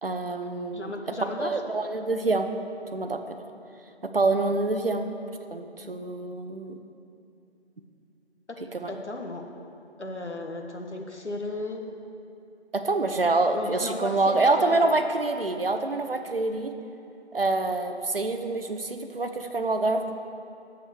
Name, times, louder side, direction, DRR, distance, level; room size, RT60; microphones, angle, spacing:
voice 1, 0.0-0.9 1.4-2.5 2.9-3.4 4.0-5.0 5.5-6.8 8.7-8.9 12.7-16.7 17.3-20.1, right 3 dB, 55° right, 7 dB, 0.9 m, -26 dB
voice 2, 0.7-1.6 8.9-9.4 10.0-11.8 13.5-15.0, left 2 dB, 85° left, 2 dB, 1.5 m, -35 dB
8.9 x 7.5 x 6.7 m, 2.7 s
figure-of-eight pair, 170°, 34 cm